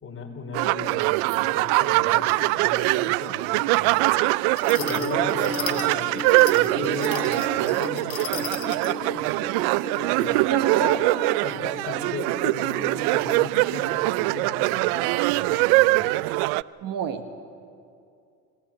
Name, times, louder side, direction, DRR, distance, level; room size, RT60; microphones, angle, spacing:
voice 1, 0.0-4.1 4.8-9.3 10.2-10.5 10.8-10.9 11.4-16.1, left 4 dB, 25° left, 3 dB, 4.1 m, -38 dB
sound 1, 0.5-16.6, right 21 dB, 60° right, 0.5 m, -23 dB
sound 2, 4.6-9.0, left 13 dB, 75° left, 2.0 m, -36 dB
sound 3, 4.6-13.7, left 2 dB, 10° left, 2.2 m, -37 dB
voice 2, 10.4-11.0 16.8-17.4, right 8 dB, 45° right, 8 dB, 1.5 m, -27 dB
26.0 x 17.0 x 8.7 m, 2.4 s
supercardioid pair, 105°, 47 cm